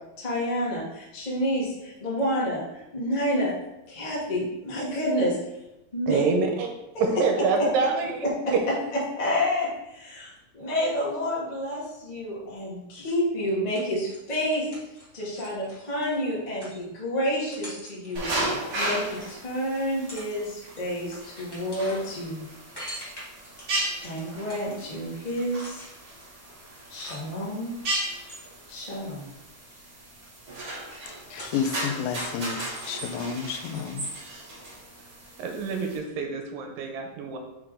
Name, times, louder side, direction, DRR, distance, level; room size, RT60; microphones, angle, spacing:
voice 1, 0.2-3.5 3.9-5.4 5.9-6.2 8.4-8.5 9.1-14.7 15.1-18.2 18.7-22.4 24.0-25.8 26.9-27.8 28.7-29.3 31.0-31.1, equal, 65° left, -6 dB, 0.4 m, -29 dB
voice 2, 6.1-6.7 7.0-8.3 35.4-37.4, right 4 dB, 80° right, 3 dB, 2.4 m, -26 dB
sound 1, 13.5-19.3 19.8-20.4 20.6-27.6 28.0-29.3 29.6-31.9 32.1-32.2, equal, 15° left, 0.9 m, -46 dB
sound 2, 18.1-36.0, right 1 dB, 50° right, 1.4 m, -35 dB
voice 3, 31.3-34.1, left 6 dB, 90° left, 7 dB, 2.4 m, -31 dB
5.4 x 4.9 x 3.7 m, 0.92 s
omnidirectional pair, 4.1 m